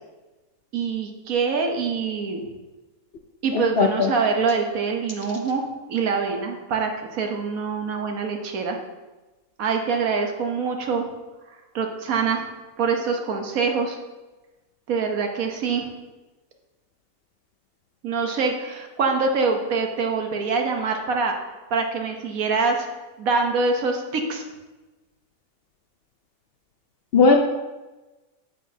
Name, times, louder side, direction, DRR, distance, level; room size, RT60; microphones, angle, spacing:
voice 1, 0.7-2.5 3.4-8.8 9.6-11.1 11.7-12.5 12.8-14.0 14.9-15.9 18.0-22.9 23.2-24.4, right 4 dB, 75° right, 3 dB, 1.4 m, -25 dB
voice 2, 3.8-4.1 27.1-27.4, left 4 dB, 60° left, 4 dB, 0.7 m, -16 dB
8.7 x 7.4 x 2.7 m, 1.1 s
omnidirectional pair, 1.5 m